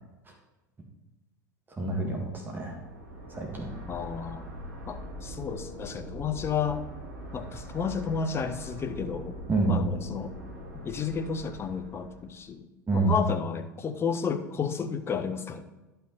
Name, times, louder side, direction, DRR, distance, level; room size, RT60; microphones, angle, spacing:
voice 1, 1.8-2.8 3.3-3.7 9.5-9.8 12.9-13.2, right 3 dB, 20° right, 1 dB, 1.8 m, -27 dB
sound 1, 2.6-12.4, equal, 70° right, 1.8 m, -42 dB
voice 2, 3.9-4.5 4.9-6.8 7.3-9.4 9.7-10.3 10.7-12.7 12.9-15.6, left 6 dB, 25° left, 9 dB, 0.7 m, -32 dB
11.0 x 5.7 x 4.1 m, 1.1 s
figure-of-eight pair, 80°, 10 cm